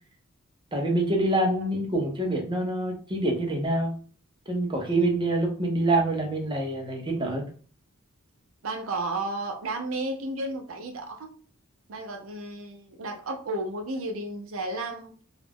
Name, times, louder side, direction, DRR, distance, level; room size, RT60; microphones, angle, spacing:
voice 1, 0.7-3.9 4.5-7.5, right 1 dB, 20° right, 1 dB, 0.6 m, -26 dB
voice 2, 8.6-11.3 11.9-15.2, right 2 dB, 70° right, 4 dB, 0.6 m, -33 dB
2.4 x 2.0 x 3.4 m, 0.41 s
head